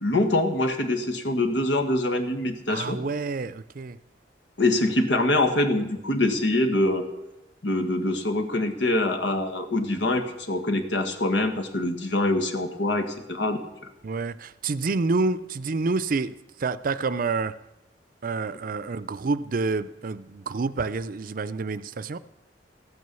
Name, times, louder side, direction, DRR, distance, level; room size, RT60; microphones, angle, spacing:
voice 1, 0.0-3.0 4.6-7.1 7.6-13.9, left 2 dB, 85° left, 6 dB, 1.7 m, -24 dB
voice 2, 2.7-4.0 14.0-17.5 18.2-22.2, right 3 dB, 50° right, 16 dB, 0.5 m, -28 dB
14.5 x 9.6 x 6.9 m, 0.94 s
head